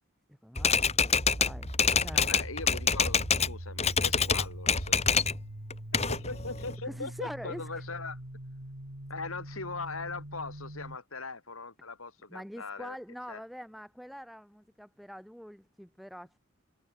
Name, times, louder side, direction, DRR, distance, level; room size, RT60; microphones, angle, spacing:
voice 1, 0.3-1.7 2.0-2.3 6.1-6.2 6.8-7.7 12.3-16.4, equal, ahead, 7.4 m, -44 dB
Typewriter, 0.6-3.5 3.8-5.4 5.7-6.7, left 6 dB, 30° left, 3.6 m, -26 dB
sound 1, 1.2-11.0, right 1 dB, 80° right, 3.9 m, -43 dB
voice 2, 2.1-5.0 5.9-8.2 9.1-13.0 13.3-13.4, left 3 dB, 90° left, 5.7 m, -40 dB
head